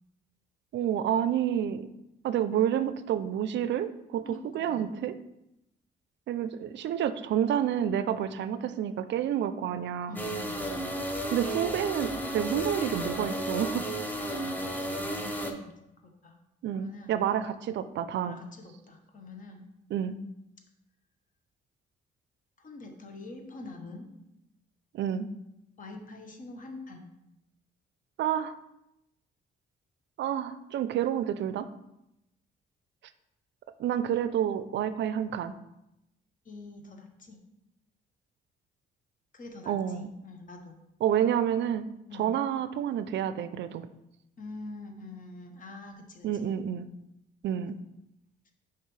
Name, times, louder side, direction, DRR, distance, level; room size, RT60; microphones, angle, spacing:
voice 1, 0.7-1.9 2.2-5.2 6.3-10.2 11.3-13.8 16.6-18.4 19.9-20.2 24.9-25.3 28.2-28.6 30.2-31.7 33.8-35.5 39.7-40.1 41.0-41.9 42.2-43.8 46.2-46.9 47.4-47.8, right 9 dB, 65° right, 12 dB, 0.4 m, -29 dB
voice 2, 4.2-5.0 10.1-11.0 14.4-15.7 16.0-16.4 16.7-17.2 18.2-19.7 22.6-24.1 25.8-27.1 36.4-37.4 39.3-40.8 42.1-42.3 44.4-46.5, left 2 dB, 40° left, 4 dB, 1.1 m, -45 dB
sound 1, 10.2-15.5, equal, 10° left, 0.8 m, -33 dB
6.6 x 4.8 x 3.2 m, 0.86 s
cardioid pair, 90°, 20 cm